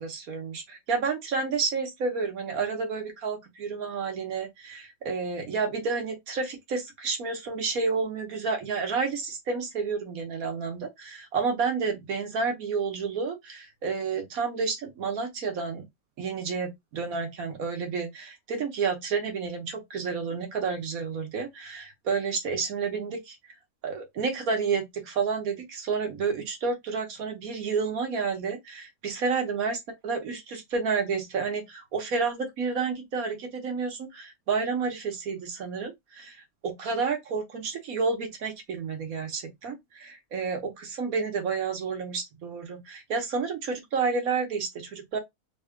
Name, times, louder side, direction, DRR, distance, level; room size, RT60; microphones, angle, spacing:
voice 1, 0.0-15.9 16.2-23.4 23.8-45.2, right 5 dB, 75° right, 1.5 m, -30 dB
3.6 x 2.2 x 3.6 m
omnidirectional pair, 1.5 m